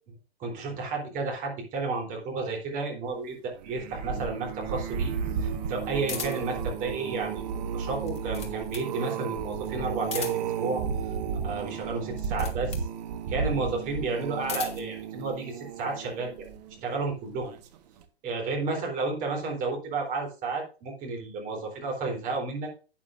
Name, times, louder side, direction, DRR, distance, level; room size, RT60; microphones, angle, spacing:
voice 1, 0.4-5.1 5.4-7.4 7.7-10.8 11.4-12.8 13.3-16.3 16.8-17.5 18.2-22.7, right 3 dB, 25° right, 1 dB, 3.6 m, -32 dB
sound 1, 3.5-16.9 17.4-17.8 18.0-18.1, right 7 dB, 40° right, 1.4 m, -33 dB
sound 2, 6.0-6.6 7.9-8.9 10.0-10.6 12.1-12.9 14.2-14.9, left 7 dB, 20° left, 1.7 m, -37 dB
12.0 x 8.9 x 2.6 m, 0.34 s
hypercardioid pair, 130°, 31 cm